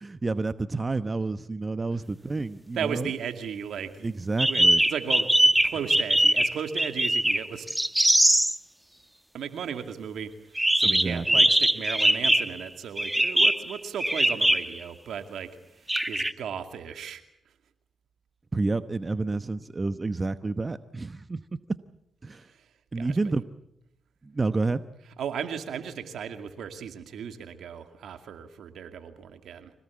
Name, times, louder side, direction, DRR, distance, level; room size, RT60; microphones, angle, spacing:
voice 1, 0.0-3.1 4.0-4.8 10.8-11.5 18.5-21.4 22.2-22.5 22.9-23.4 24.2-24.8, right 3 dB, 35° right, 12 dB, 1.0 m, -29 dB
voice 2, 2.8-4.1 4.4-4.6 4.9-7.7 9.3-15.5 16.1-17.2 22.3-22.4 23.0-23.1 25.2-29.7, right 7 dB, 75° right, 7 dB, 2.4 m, -35 dB
sound 1, 4.4-8.6 10.6-12.6 13.0-14.8 15.9-16.3, right 1 dB, 10° right, 1.2 m, -22 dB
25.5 x 18.0 x 8.6 m, 0.80 s
supercardioid pair, 55°, 0 cm